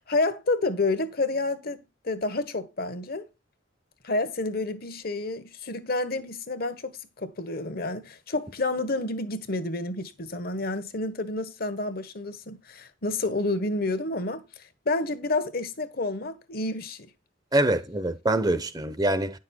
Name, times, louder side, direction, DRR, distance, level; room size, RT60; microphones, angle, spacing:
voice 1, 0.0-3.3 4.0-17.1, left 2 dB, 55° left, 1.3 m, -29 dB
voice 2, 17.5-19.4, right 1 dB, 20° right, 0.8 m, -24 dB
10.0 x 6.4 x 4.4 m
head